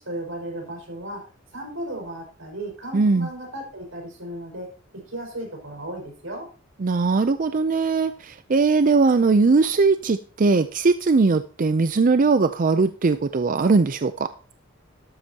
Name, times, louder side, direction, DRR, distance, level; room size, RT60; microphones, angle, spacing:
voice 1, 0.0-6.5, right 1 dB, 85° right, 0 dB, 5.5 m, -35 dB
voice 2, 2.9-3.3 6.8-14.3, right 4 dB, 40° right, 11 dB, 0.5 m, -20 dB
13.0 x 12.0 x 2.9 m, 0.37 s
head